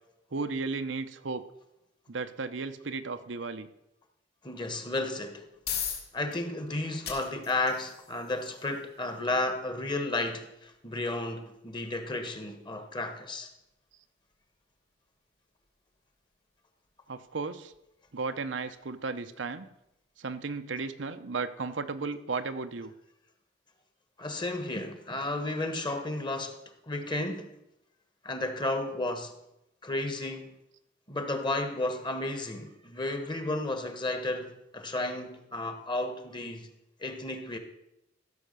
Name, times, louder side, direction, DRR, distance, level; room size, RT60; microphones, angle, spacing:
voice 1, 0.3-1.4 2.1-3.7 17.1-17.7 18.1-19.7 20.2-22.9, right 4 dB, 75° right, 0.8 m, -34 dB
voice 2, 4.4-5.4 6.1-13.5 24.2-26.6 26.9-27.5 28.2-29.3 29.8-30.5 31.1-36.7 37.0-37.6, left 2 dB, 25° left, 1.3 m, -33 dB
sound 1, 5.2-20.0, left 8 dB, 60° left, 3.6 m, -45 dB
14.5 x 6.6 x 6.7 m
head